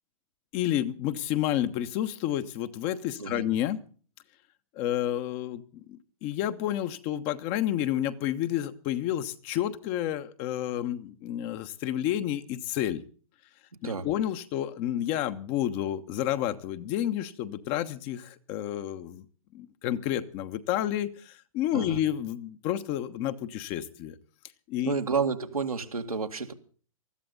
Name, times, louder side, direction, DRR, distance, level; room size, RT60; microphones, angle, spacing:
voice 1, 0.5-3.8 4.7-13.0 13.8-19.2 19.5-24.2 24.7-24.9, left 12 dB, 35° left, 10 dB, 1.2 m, -30 dB
voice 2, 24.9-26.5, right 5 dB, 90° right, 4 dB, 2.2 m, -30 dB
20.0 x 14.0 x 4.0 m, 0.43 s
hypercardioid pair, 120°, 18 cm